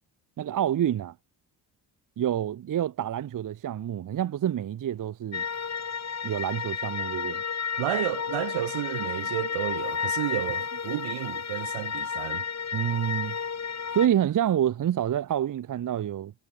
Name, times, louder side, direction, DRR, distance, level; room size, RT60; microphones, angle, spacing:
voice 1, 0.4-1.1 2.2-5.4 6.2-7.4 12.7-13.4 13.9-16.3, right 10 dB, 40° right, 0.8 m, -27 dB
sound 1, 5.3-14.1, left 6 dB, 35° left, 1.6 m, -32 dB
voice 2, 7.8-12.5, right 18 dB, 75° right, 1.8 m, -31 dB
hypercardioid pair, 50°, 47 cm